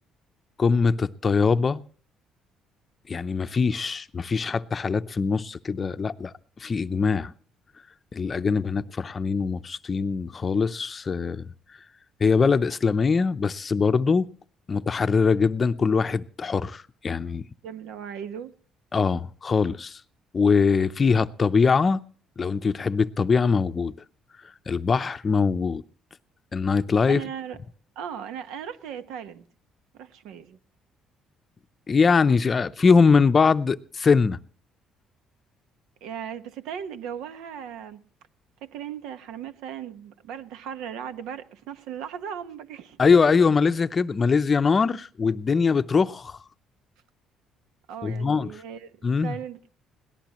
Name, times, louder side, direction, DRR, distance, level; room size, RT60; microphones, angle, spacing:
voice 1, 0.6-1.8 3.1-7.3 8.1-11.5 12.2-14.3 14.7-17.4 18.9-20.0 20.3-22.0 22.4-23.9 24.7-25.8 26.5-27.2 31.9-34.4 43.0-46.4 48.0-48.6 49.0-49.3, left 5 dB, 25° left, 0.6 m, -22 dB
voice 2, 17.6-18.5 27.1-27.6 27.9-29.4 29.9-30.6 36.0-38.0 38.6-43.0 47.9-49.7, right 8 dB, 90° right, 1.3 m, -37 dB
22.0 x 18.0 x 3.0 m
cardioid pair, 145°, 0 cm